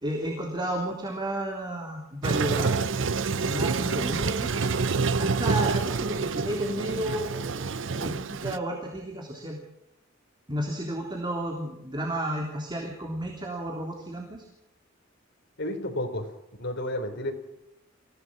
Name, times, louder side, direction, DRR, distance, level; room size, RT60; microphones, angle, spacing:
voice 1, 0.0-2.8 3.4-4.5 5.2-9.6 10.5-14.4, right 1 dB, 25° right, 1 dB, 3.4 m, -32 dB
Toilet flush, 2.2-8.6, right 4 dB, 70° right, 0.8 m, -27 dB
voice 2, 15.6-16.3 16.6-17.3, left 1 dB, 60° left, 4 dB, 4.2 m, -31 dB
26.0 x 16.5 x 6.3 m, 0.87 s
head